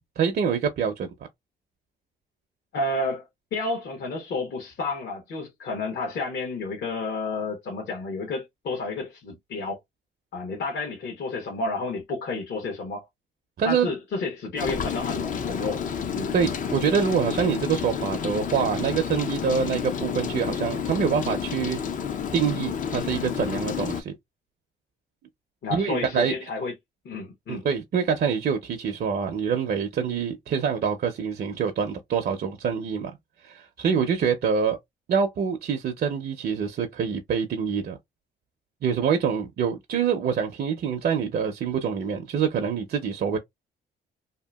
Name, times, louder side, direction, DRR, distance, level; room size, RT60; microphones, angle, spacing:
voice 1, 0.2-1.1 13.6-13.9 16.3-21.8 22.3-24.1 25.7-26.3 27.5-33.1 33.4-34.8 35.1-38.0 38.8-43.4, right 6 dB, 50° right, 0.6 m, -25 dB
voice 2, 2.7-3.3 3.5-9.8 10.3-13.1 13.6-15.8 16.1-16.3 25.6-26.7 27.0-27.7, left 3 dB, 60° left, 1.0 m, -31 dB
Rain, 14.6-24.0, left 7 dB, 40° left, 0.4 m, -30 dB
2.8 x 2.4 x 2.2 m
cardioid pair, 90°, 20 cm